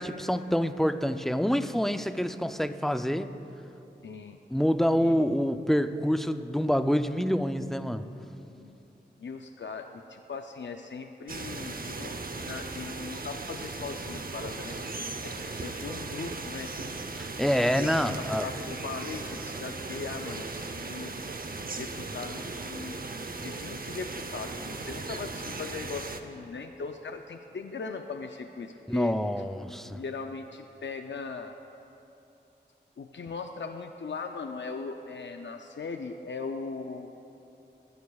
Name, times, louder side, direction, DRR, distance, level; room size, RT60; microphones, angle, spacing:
voice 1, 0.0-3.3 4.5-8.1 17.2-18.5 28.9-30.0, equal, ahead, 9 dB, 0.4 m, -27 dB
voice 2, 4.0-4.4 4.9-5.1 8.4-8.8 9.2-14.8 15.2-16.7 17.8-17.9 18.2-21.3 21.7-29.2 29.8-31.5 33.0-37.1, left 4 dB, 85° left, 5 dB, 0.5 m, -39 dB
sound 1, 11.3-26.2, right 3 dB, 50° right, 0.7 m, -37 dB
20.5 x 14.5 x 2.3 m, 2.9 s
wide cardioid pair, 70°, 19 cm